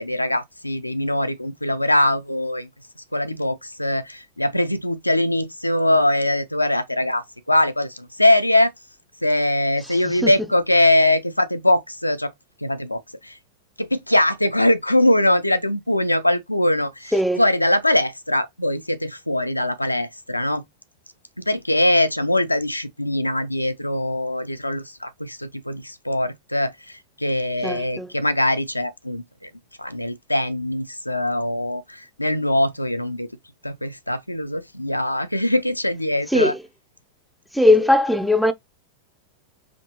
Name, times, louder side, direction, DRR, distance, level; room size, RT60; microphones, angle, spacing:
voice 1, 0.0-2.7 3.1-8.7 9.2-12.3 12.6-13.4 13.8-20.6 21.4-29.5 29.8-33.3 33.6-36.5, left 1 dB, 85° left, 0.6 m, -22 dB
voice 2, 27.6-28.1 36.3-36.6 37.5-38.5, left 1 dB, ahead, 0.6 m, -18 dB
5.1 x 2.8 x 2.9 m
figure-of-eight pair, 90°, 0 cm